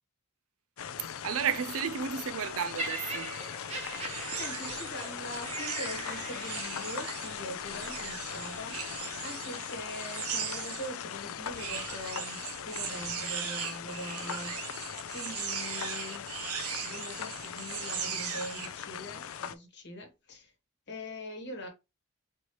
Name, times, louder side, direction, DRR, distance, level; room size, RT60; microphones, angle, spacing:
sound 1, 0.8-19.5, left 8 dB, 65° left, 0.4 m, -40 dB
voice 1, 1.2-3.3, right 7 dB, 70° right, 0.4 m, -32 dB
Laughter, 2.8-7.0 7.8-8.0, right 2 dB, 30° right, 1.0 m, -40 dB
sound 2, 4.0-10.9 11.5-18.7, right 7 dB, 85° right, 1.0 m, -39 dB
voice 2, 4.4-20.5 20.9-21.7, left 1 dB, 50° left, 1.3 m, -43 dB
4.3 x 3.0 x 3.1 m
head